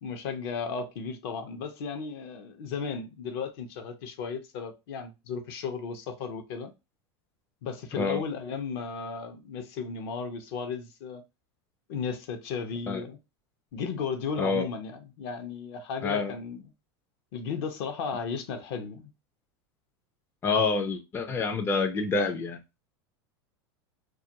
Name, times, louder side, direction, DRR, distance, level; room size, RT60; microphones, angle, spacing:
voice 1, 0.0-6.7 7.6-11.2 11.9-13.2 13.7-16.6 17.3-19.1, left 5 dB, 65° left, 0.6 m, -35 dB
voice 2, 16.0-16.3 20.4-22.6, left 4 dB, 15° left, 0.3 m, -27 dB
2.3 x 2.2 x 2.7 m
hypercardioid pair, 115°, 14 cm